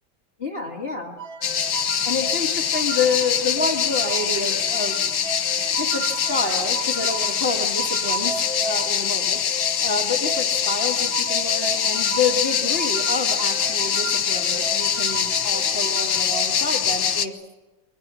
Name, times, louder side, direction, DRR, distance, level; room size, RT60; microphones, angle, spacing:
voice 1, 0.4-1.2 2.0-5.0 5.8-8.3 8.6-17.3, left 4 dB, 30° left, 0 dB, 1.9 m, -28 dB
sound 1, 1.2-16.5, right 5 dB, 85° right, 3.1 m, -36 dB
sound 2, 1.4-17.3, left 8 dB, 85° left, 2.1 m, -24 dB
28.5 x 23.5 x 6.1 m, 1.1 s
omnidirectional pair, 2.0 m